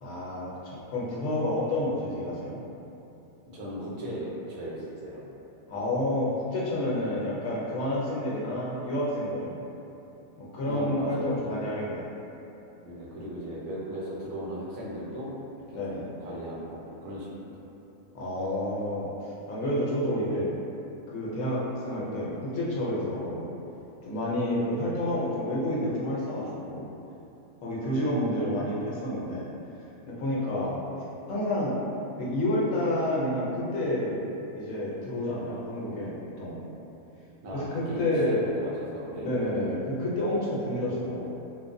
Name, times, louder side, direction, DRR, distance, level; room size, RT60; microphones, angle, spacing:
voice 1, 0.0-2.6 5.7-9.6 10.4-12.1 15.7-16.1 18.1-19.1 19.5-20.5 21.1-23.5 24.1-26.9 27.6-29.5 30.1-30.8 31.3-31.8 32.2-34.2 34.5-36.6 37.5-38.4 39.2-41.3, left 1 dB, 75° left, -6 dB, 1.0 m, -29 dB
voice 2, 3.5-5.2 10.7-11.6 12.8-15.3 15.7-17.5 37.4-39.5, equal, 75° right, -7 dB, 1.1 m, -37 dB
3.0 x 2.0 x 2.5 m, 2.9 s
omnidirectional pair, 1.5 m